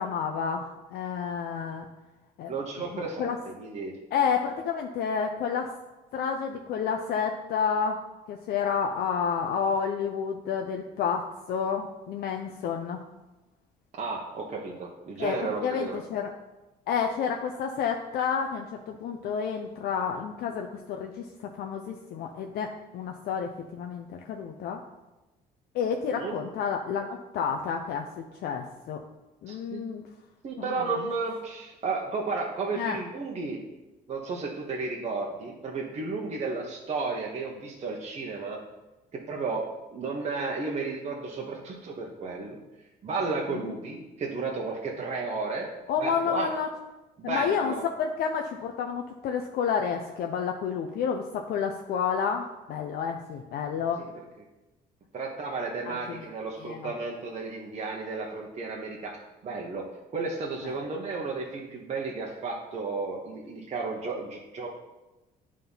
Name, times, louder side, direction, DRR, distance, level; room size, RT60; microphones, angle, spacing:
voice 1, 0.0-1.9 2.4-2.5 2.9-3.4 4.1-5.7 6.1-8.0 8.3-13.0 15.2-16.3 16.9-24.8 25.7-28.1 28.4-29.0 29.4-30.0 30.6-30.7 32.7-33.0 43.5-43.7 45.9-46.7 47.2-47.7 48.0-54.0 55.9-56.2 56.6-56.9, left 6 dB, 65° left, 3 dB, 0.7 m, -30 dB
voice 2, 2.5-3.9 13.9-16.0 26.1-26.4 29.5-29.8 30.4-33.6 34.1-38.6 39.1-39.6 39.9-42.6 43.0-45.7 46.0-46.5 47.2-47.8 55.1-59.2 59.4-59.8 60.1-64.7, right 4 dB, 40° right, -2 dB, 1.1 m, -33 dB
9.2 x 3.7 x 5.6 m, 1.1 s
cardioid pair, 110°, 17 cm